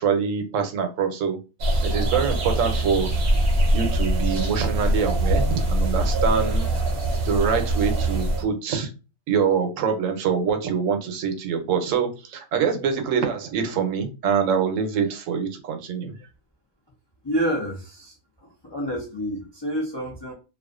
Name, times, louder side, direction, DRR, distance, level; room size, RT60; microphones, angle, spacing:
voice 1, 0.0-1.4 1.8-3.1 3.7-6.7 7.2-8.9 9.3-16.2, right 6 dB, 80° right, 6 dB, 1.0 m, -25 dB
sound 1, 1.6-8.4, right 1 dB, 55° right, 0.7 m, -23 dB
voice 2, 17.2-18.1 18.6-20.3, equal, 40° left, -3 dB, 0.4 m, -28 dB
2.4 x 2.3 x 2.3 m, 0.30 s
omnidirectional pair, 1.3 m